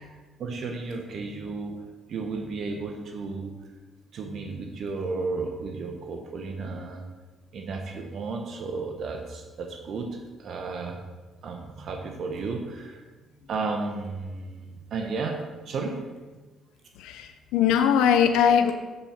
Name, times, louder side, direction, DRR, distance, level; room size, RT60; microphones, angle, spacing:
voice 1, 0.4-1.8 2.1-3.5 4.1-7.0 7.5-11.0 11.4-13.0 13.5-15.4 15.6-16.0, right 4 dB, 60° right, 3 dB, 0.9 m, -33 dB
voice 2, 17.0-18.7, left 8 dB, 85° left, 8 dB, 0.5 m, -21 dB
8.0 x 4.4 x 5.6 m, 1.3 s
supercardioid pair, 75°, 0 cm